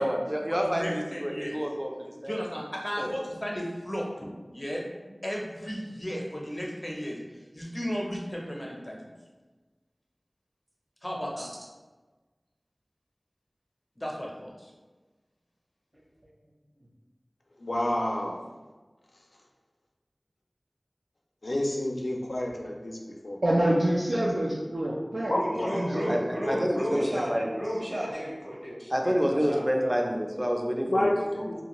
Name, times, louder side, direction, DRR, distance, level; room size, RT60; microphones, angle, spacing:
voice 1, 0.0-2.3 3.0-3.1 25.5-27.4 28.9-31.1, equal, 15° right, 1 dB, 0.4 m, -28 dB
voice 2, 0.6-1.6 2.2-4.3 4.5-4.8 5.2-7.2 7.5-9.0 11.0-11.5 14.0-14.7, equal, 30° left, -2 dB, 0.6 m, -34 dB
voice 3, 17.6-18.5 21.4-23.0 23.2-23.4 25.3-25.7 30.9-31.6, left 1 dB, 85° left, 0 dB, 0.4 m, -29 dB
voice 4, 23.4-25.3 25.7-26.2, right 1 dB, 80° right, -6 dB, 0.3 m, -26 dB
voice 5, 25.3-30.1, equal, 60° right, -5 dB, 0.8 m, -33 dB
2.5 x 2.3 x 2.9 m, 1.2 s
wide cardioid pair, 40°, 0 cm